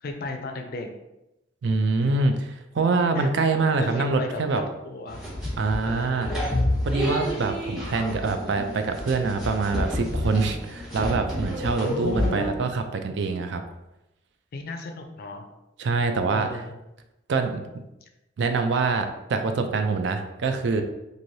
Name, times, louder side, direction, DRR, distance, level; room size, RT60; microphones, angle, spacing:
voice 1, 0.0-0.9 3.1-3.3 3.8-5.2 5.8-6.5 11.8-12.6 14.5-15.5 16.3-16.7, left 2 dB, 50° left, 4 dB, 0.4 m, -35 dB
voice 2, 1.6-4.6 5.6-6.3 6.9-13.6 15.8-16.5 17.3-17.6 18.4-20.8, right 3 dB, 65° right, 6 dB, 0.3 m, -25 dB
sound 1, 5.1-12.5, left 1 dB, 5° right, 1.0 m, -29 dB
3.1 x 2.6 x 2.6 m, 0.94 s
head